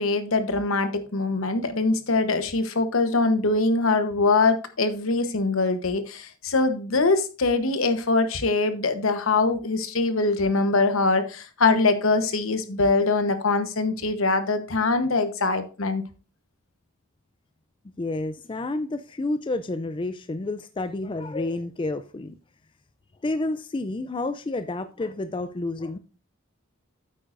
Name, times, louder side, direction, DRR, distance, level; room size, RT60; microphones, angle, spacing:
voice 1, 0.0-16.0, left 3 dB, 70° left, 1.0 m, -23 dB
voice 2, 18.0-22.4 23.2-26.0, left 2 dB, 25° left, 0.4 m, -30 dB
9.2 x 8.4 x 2.6 m
head